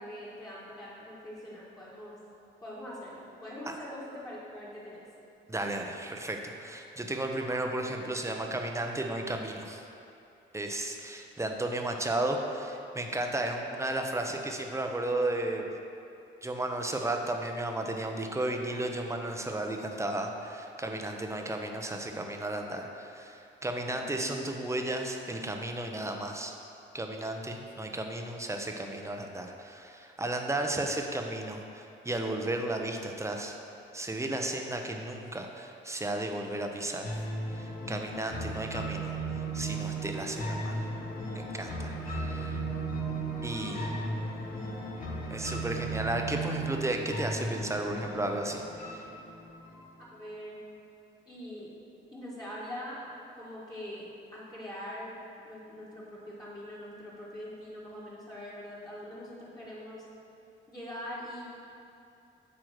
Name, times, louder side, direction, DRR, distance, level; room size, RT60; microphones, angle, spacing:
voice 1, 0.0-2.2 2.6-5.0 23.9-24.4 43.3-43.9 50.0-50.6 51.3-51.7 52.1-53.0 53.3-55.1 55.4-60.0 60.7-61.4, equal, 20° left, -8 dB, 1.7 m, -43 dB
voice 2, 5.5-9.8 10.5-15.7 16.4-26.5 26.9-33.6 33.9-37.2 37.5-40.9 41.3-42.7 43.4-43.9 45.3-49.0, right 1 dB, 15° right, 3 dB, 0.7 m, -34 dB
sound 1, 37.0-50.0, right 2 dB, 45° left, 1.2 m, -36 dB
8.6 x 3.1 x 6.3 m, 2.7 s
cardioid pair, 90°, 20 cm